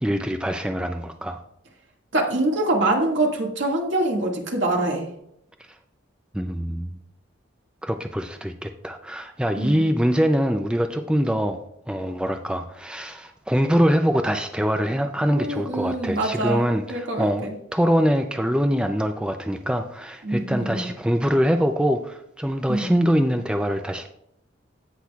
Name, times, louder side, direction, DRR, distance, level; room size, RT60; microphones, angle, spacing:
voice 1, 0.0-1.4 6.3-6.9 7.8-17.5 17.7-24.1, equal, 5° right, 6 dB, 0.4 m, -23 dB
voice 2, 2.1-5.1 9.6-9.8 15.3-17.3 20.2-20.9 22.7-22.9, right 2 dB, 70° right, 0 dB, 2.0 m, -24 dB
16.5 x 6.1 x 2.4 m, 0.73 s
head